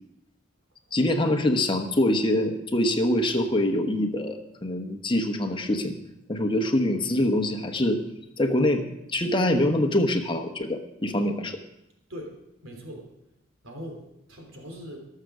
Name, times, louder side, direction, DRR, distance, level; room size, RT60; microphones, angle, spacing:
voice 1, 0.9-6.0 6.3-8.0 8.4-8.8 9.1-11.6, left 1 dB, 25° left, 4 dB, 1.0 m, -24 dB
voice 2, 12.6-13.1 13.6-15.0, equal, 85° right, 1 dB, 3.3 m, -40 dB
19.5 x 6.8 x 4.9 m, 0.85 s
head